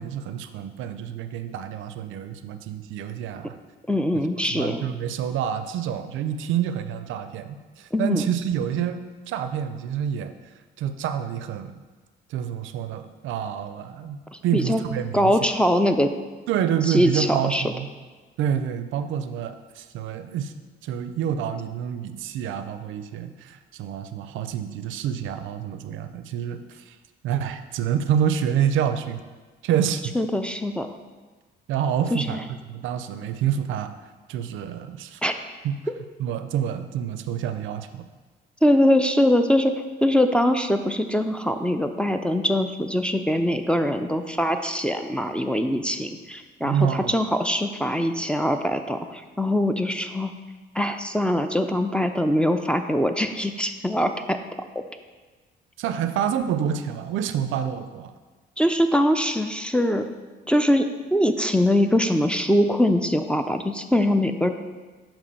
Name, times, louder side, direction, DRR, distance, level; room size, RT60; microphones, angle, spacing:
voice 1, 0.0-3.6 4.5-10.3 10.8-11.8 12.3-14.2 14.4-15.4 16.5-17.9 18.4-20.5 20.8-27.0 27.2-29.2 29.6-30.2 31.7-33.9 34.3-35.2 35.6-35.7 36.2-38.0 46.6-47.3 55.8-58.1, right 9 dB, 80° right, 10 dB, 0.4 m, -27 dB
voice 2, 3.9-4.8 7.9-8.2 14.3-14.8 15.1-16.1 16.9-17.6 30.1-30.9 32.1-32.4 35.2-35.3 38.6-50.3 50.8-54.4 58.6-60.1 60.5-64.5, equal, 5° left, 7 dB, 0.4 m, -22 dB
6.7 x 3.0 x 5.4 m, 1.3 s
cardioid pair, 90°, 20 cm